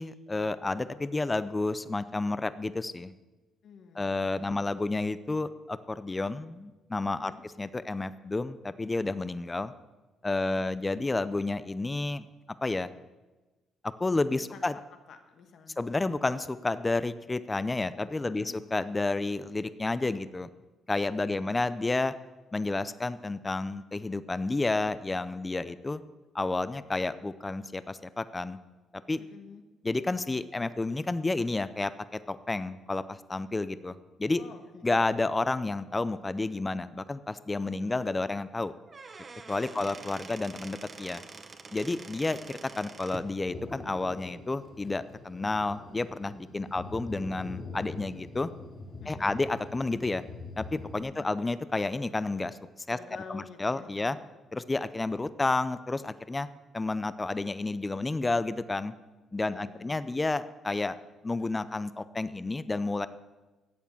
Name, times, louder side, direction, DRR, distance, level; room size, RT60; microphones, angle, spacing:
voice 1, 0.0-3.1 4.0-7.3 7.6-9.7 10.2-12.2 12.6-12.9 13.8-14.7 15.8-20.5 20.9-22.1 22.5-26.0 26.3-28.6 29.1-29.2 29.8-34.4 34.8-38.7 39.5-41.2 41.7-48.5 49.1-50.2 50.6-52.6 52.9-53.0 53.3-54.2 54.5-56.5 56.7-58.9 59.3-61.0 61.2-63.1, left 2 dB, 20° left, 14 dB, 0.6 m, -30 dB
voice 2, 3.6-4.6 7.2-7.4 14.3-15.8 18.2-18.5 21.0-21.6 29.2-29.6 34.4-35.1 37.8-38.1 39.7-40.0 46.6-47.0 49.0-49.4 51.0-51.4 52.9-54.2 59.4-59.9, left 6 dB, 65° left, 6 dB, 1.5 m, -50 dB
Squeak / Wood, 38.7-43.3, right 4 dB, 35° right, 1.0 m, -46 dB
Thunder, 43.5-51.0, left 3 dB, 45° left, 3.5 m, -44 dB
12.0 x 8.2 x 7.2 m, 1.2 s
cardioid pair, 90°, 0 cm